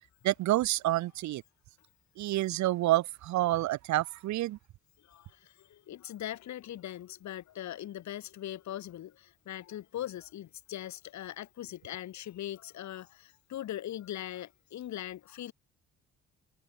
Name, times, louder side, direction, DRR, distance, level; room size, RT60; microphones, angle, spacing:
voice 1, 0.2-1.4 2.2-4.6, right 16 dB, 70° right, 0.6 m, -28 dB
voice 2, 5.7-15.5, left 12 dB, 65° left, 1.4 m, -40 dB
cardioid pair, 90°, 30 cm